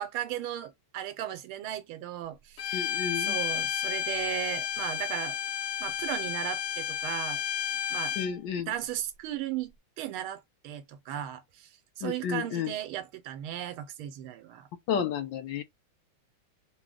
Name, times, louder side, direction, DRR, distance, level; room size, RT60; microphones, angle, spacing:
voice 1, 0.0-5.4 5.8-7.4 7.9-8.2 8.6-11.7 12.0-14.7, right 12 dB, 85° right, 1.5 m, -36 dB
Bowed string instrument, 2.6-8.3, left 10 dB, 90° left, 0.8 m, -32 dB
voice 2, 2.7-3.4 8.2-8.7 12.0-12.7 14.9-15.6, left 7 dB, 70° left, 1.3 m, -31 dB
3.8 x 2.2 x 3.5 m
omnidirectional pair, 2.3 m